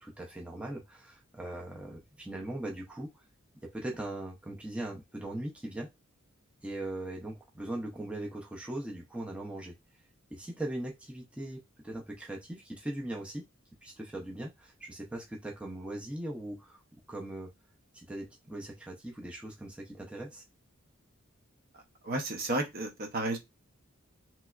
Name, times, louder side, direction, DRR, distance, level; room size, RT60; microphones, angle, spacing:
voice 1, 0.0-3.2 3.6-5.9 6.6-9.7 10.3-11.6 11.8-13.4 13.8-16.8 17.1-17.5 17.9-20.4, right 1 dB, 5° right, 0.5 m, -40 dB
voice 2, 21.7-23.4, right 2 dB, 50° right, 0.7 m, -33 dB
3.3 x 3.0 x 2.3 m
head